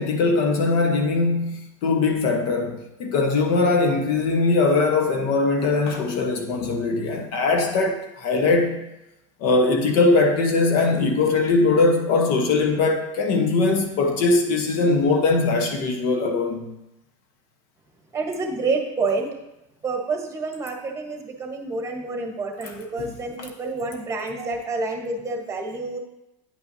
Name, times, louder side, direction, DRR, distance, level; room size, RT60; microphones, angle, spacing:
voice 1, 0.0-8.8 9.4-16.7 22.6-22.7 23.0-23.1 23.4-23.5, left 3 dB, 60° left, 3 dB, 1.1 m, -21 dB
voice 2, 18.1-19.3 19.8-26.0, right 3 dB, 20° right, 3 dB, 1.1 m, -28 dB
9.6 x 5.6 x 2.7 m, 0.92 s
supercardioid pair, 120°, 16 cm